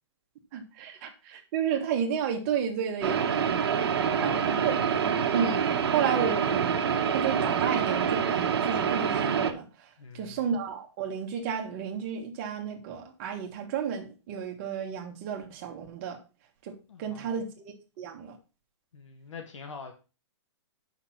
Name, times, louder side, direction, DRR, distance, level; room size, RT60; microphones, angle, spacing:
voice 1, 0.5-3.3 4.2-4.8 5.3-5.6 5.9-6.6 7.1-16.2 16.6-18.4, right 7 dB, 25° right, 1.4 m, -32 dB
sound 1, 3.0-9.5, right 7 dB, 55° right, 1.3 m, -26 dB
voice 2, 3.6-4.8 10.0-10.5 16.9-17.4 18.9-19.9, left 4 dB, 90° left, 1.6 m, -44 dB
6.8 x 5.8 x 5.9 m
hypercardioid pair, 175°, 15 cm